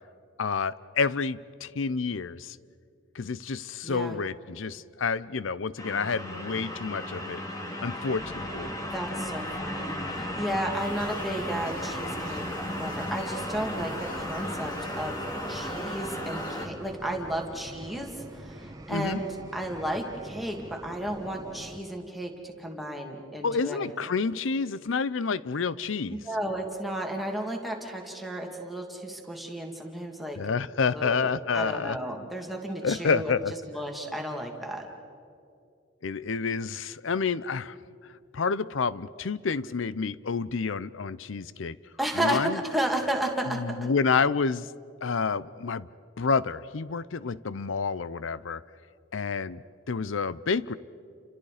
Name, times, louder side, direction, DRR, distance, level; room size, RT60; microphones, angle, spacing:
voice 1, 0.4-2.6 3.1-7.4 7.8-8.7 18.9-19.2 23.4-26.2 30.4-32.0 32.8-33.5 36.0-37.8 38.3-41.8 42.2-42.6 43.5-44.7 45.0-45.9 46.2-48.6 49.1-49.6 49.9-50.7, left 5 dB, 70° left, 17 dB, 0.6 m, -29 dB
voice 2, 3.8-4.2 8.8-15.2 15.5-23.9 26.2-30.5 30.9-33.3 33.7-34.9 42.0-43.9, right 1 dB, ahead, 1 dB, 2.4 m, -33 dB
sound 1, 5.8-16.7, left 1 dB, 20° left, 2.3 m, -35 dB
sound 2, 8.1-21.8, right 1 dB, 20° right, 1.3 m, -44 dB
sound 3, 10.7-16.7, left 2 dB, 40° left, 2.4 m, -49 dB
29.5 x 26.5 x 5.0 m, 2.5 s
head